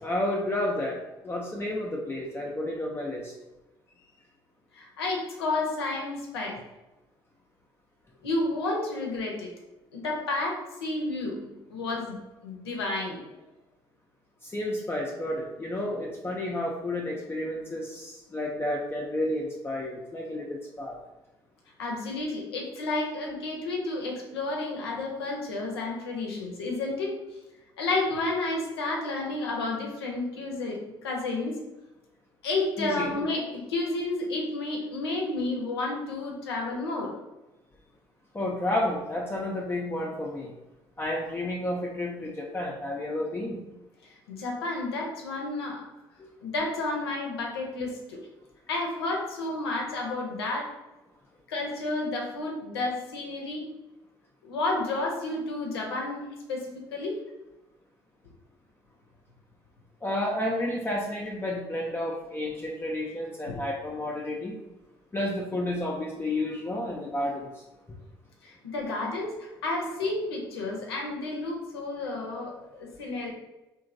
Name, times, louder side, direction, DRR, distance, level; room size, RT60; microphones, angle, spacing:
voice 1, 0.0-1.0 1.2-3.3 14.4-21.0 32.8-33.1 38.3-40.5 41.0-43.6 60.0-64.6 65.1-67.6, left 1 dB, 20° left, -2 dB, 0.5 m, -31 dB
voice 2, 4.7-6.6 8.2-9.5 9.9-13.2 21.8-27.1 27.8-31.6 32.4-37.1 44.3-45.8 46.4-48.2 48.7-50.7 51.5-53.7 54.4-57.1 63.5-63.6 68.4-73.3, left 2 dB, 80° left, 0 dB, 0.6 m, -31 dB
2.9 x 2.5 x 2.5 m, 1.0 s
figure-of-eight pair, 50°, 13 cm